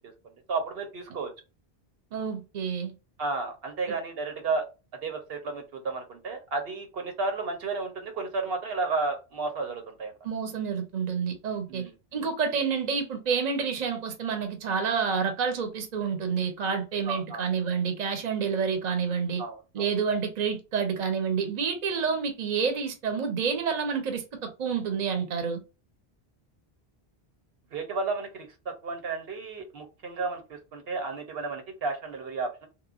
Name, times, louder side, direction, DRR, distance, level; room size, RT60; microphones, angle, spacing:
voice 1, 0.5-1.3 3.2-4.7 5.0-10.1 11.7-12.2 17.1-17.4 19.4-19.9 27.7-32.7, right 3 dB, 70° right, 0.9 m, -32 dB
voice 2, 2.1-2.9 10.2-19.4 19.7-25.6, right 6 dB, 50° right, 0.7 m, -29 dB
3.0 x 2.1 x 2.4 m
omnidirectional pair, 1.1 m